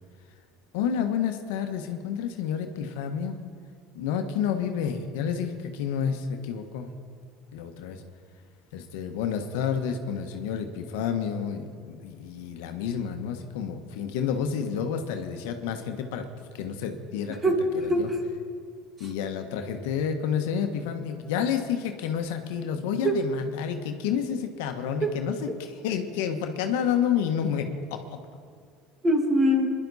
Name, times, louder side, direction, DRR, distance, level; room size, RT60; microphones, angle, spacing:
voice 1, 0.7-3.4 3.9-6.9 7.5-8.0 8.7-16.3 16.5-17.5 18.0-18.1 19.0-25.3 25.8-28.2, left 8 dB, 80° left, 6 dB, 1.2 m, -29 dB
voice 2, 17.3-18.2 19.0-19.1 23.0-23.2 25.0-25.1 29.0-29.7, equal, 25° right, 3 dB, 2.3 m, -24 dB
21.0 x 11.0 x 4.1 m, 2.1 s
supercardioid pair, 100°, 0 cm